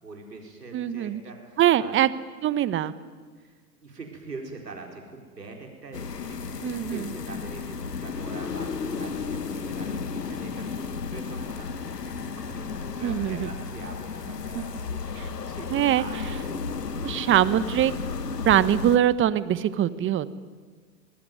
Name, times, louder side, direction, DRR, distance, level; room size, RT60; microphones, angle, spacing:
voice 1, 0.0-2.0 3.4-17.3, right 3 dB, 90° right, 2 dB, 4.8 m, -44 dB
voice 2, 0.7-1.2 1.6-2.1 2.4-2.9 6.6-7.1 13.0-13.5 14.5-14.6 15.2-15.3 15.7-16.0 17.0-17.9 18.4-20.3, right 11 dB, 25° right, 15 dB, 1.3 m, -23 dB
sound 1, 5.9-19.0, left 5 dB, 90° left, 1.6 m, -33 dB
25.0 x 20.5 x 9.4 m, 1.5 s
hypercardioid pair, 100°, 47 cm